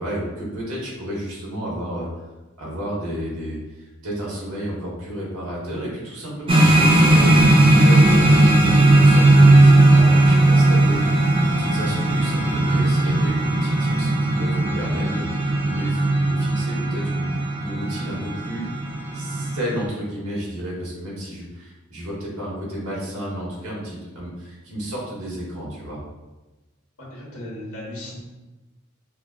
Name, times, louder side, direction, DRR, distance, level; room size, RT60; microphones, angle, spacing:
voice 1, 0.0-2.1 2.6-18.6 19.1-26.0, equal, 85° right, -5 dB, 1.2 m, -32 dB
sound 1, 6.5-19.8, right 2 dB, 25° right, 0.4 m, -17 dB
voice 2, 27.0-28.2, left 1 dB, 85° left, -6 dB, 1.3 m, -36 dB
5.0 x 2.0 x 2.3 m, 1.1 s
head